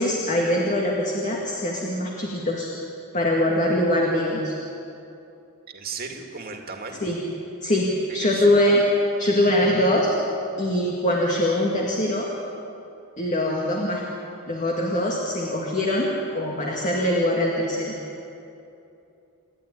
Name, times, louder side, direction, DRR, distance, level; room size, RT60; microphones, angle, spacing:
voice 1, 0.0-2.7 3.1-4.5 7.0-7.2 7.6-8.8 9.2-10.1 10.6-12.3 13.2-14.0 14.5-17.9, left 1 dB, 35° left, -1 dB, 2.1 m, -23 dB
voice 2, 5.7-7.0 8.2-8.5, right 5 dB, 45° right, 3 dB, 2.3 m, -35 dB
28.5 x 11.0 x 9.9 m, 2.7 s
head